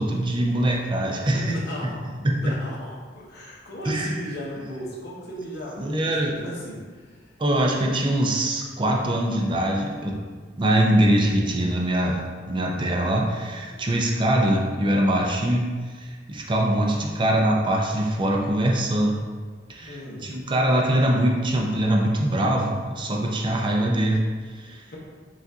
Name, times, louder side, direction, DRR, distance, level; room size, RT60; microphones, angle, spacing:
voice 1, 0.0-1.6 2.2-2.5 3.8-4.2 5.8-6.3 7.4-10.2 10.6-15.7 16.0-19.2 19.7-24.2 24.6-24.8, right 1 dB, 25° right, 0 dB, 0.5 m, -23 dB
voice 2, 1.3-2.0 2.3-7.0 19.8-20.3, equal, 60° left, -4 dB, 0.9 m, -35 dB
5.7 x 2.5 x 2.7 m, 1.5 s
head